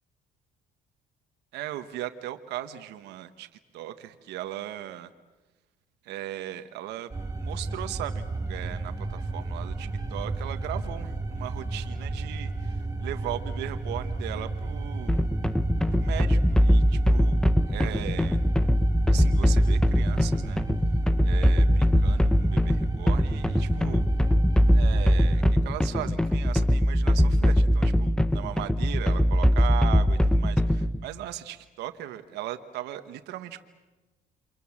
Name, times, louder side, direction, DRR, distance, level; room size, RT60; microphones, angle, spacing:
voice 1, 1.5-3.5 3.7-5.1 6.0-7.1 7.4-15.3 15.9-18.4 19.1-20.6 21.2-24.0 24.7-33.6, right 13 dB, 85° right, 8 dB, 1.4 m, -38 dB
sound 1, 7.1-25.5, right 2 dB, 20° right, 5.7 m, -33 dB
sound 2, 15.1-31.0, equal, 5° left, 0.9 m, -22 dB
28.5 x 25.5 x 7.4 m, 1.1 s
cardioid pair, 110°, 17 cm